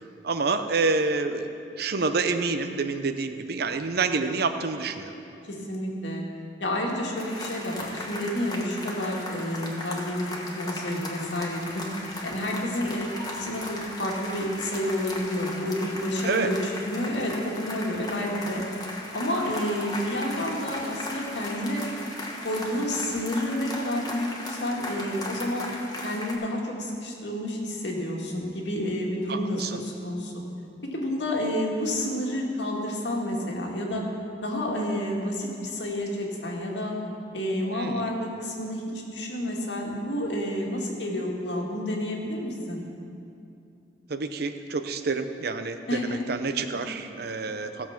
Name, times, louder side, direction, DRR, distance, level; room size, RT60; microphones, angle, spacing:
voice 1, 0.2-1.5 1.8-5.1 16.2-16.5 29.3-29.8 37.7-38.1 44.1-47.9, right 4 dB, 60° right, 9 dB, 0.7 m, -28 dB
voice 2, 5.5-6.3 6.6-11.9 12.2-18.6 19.1-21.8 22.4-30.3 30.9-34.1 34.4-37.0 37.3-38.8 39.1-42.8 45.9-46.2, left 1 dB, 85° left, -1 dB, 2.1 m, -30 dB
sound 1, 7.2-26.3, left 1 dB, 25° left, 1.5 m, -37 dB
16.0 x 7.2 x 5.9 m, 2.6 s
head